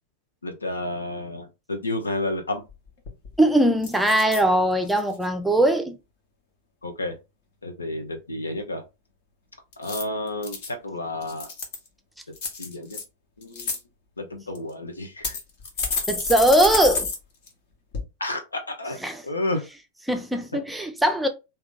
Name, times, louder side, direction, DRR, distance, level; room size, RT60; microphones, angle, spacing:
voice 1, 0.4-2.6 6.8-7.2 7.6-8.8 9.8-11.5 12.6-13.0 13.4-13.7 14.2-15.4 18.2-19.6, left 1 dB, 75° left, 0.9 m, -31 dB
sound 1, 2.7-2.8 3.1-3.4 3.8-4.4 4.9-5.3 9.7-10.7 11.2-11.9 12.4-13.0 13.4-13.8 14.6-14.7 15.2-17.2 17.5-17.6 17.9-18.0, left 4 dB, 50° left, 1.2 m, -29 dB
voice 2, 3.4-6.0 16.1-17.1 19.0-19.2 20.1-21.3, right 1 dB, 5° right, 0.6 m, -20 dB
3.4 x 2.9 x 3.7 m
figure-of-eight pair, 90°, 0 cm